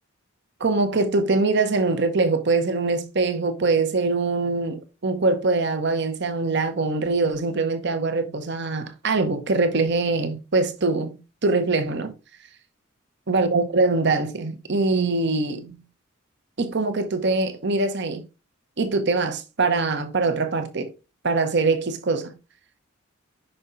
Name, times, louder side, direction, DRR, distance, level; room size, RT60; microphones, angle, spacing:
voice 1, 0.6-12.1 13.3-15.8 16.6-18.2 18.8-20.9 21.2-22.3, right 3 dB, 55° right, 0.9 m, -23 dB
5.5 x 5.5 x 3.8 m
head